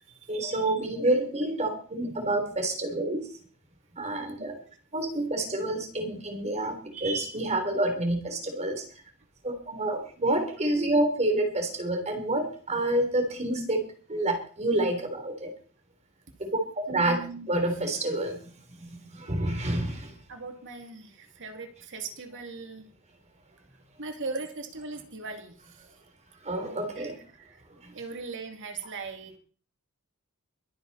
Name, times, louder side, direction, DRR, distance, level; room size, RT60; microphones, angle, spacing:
voice 1, 0.3-3.3 4.0-4.6 4.9-8.8 9.4-13.8 14.1-15.5 16.4-17.2 17.5-18.4 18.9-20.1 26.5-27.2, right 1 dB, 30° right, 5 dB, 3.5 m, -28 dB
voice 2, 16.9-17.5 20.3-22.8 24.0-25.5 27.0-27.1 27.4-27.6 27.9-29.4, right 3 dB, 60° right, 4 dB, 2.6 m, -39 dB
23.0 x 9.0 x 4.2 m, 0.42 s
head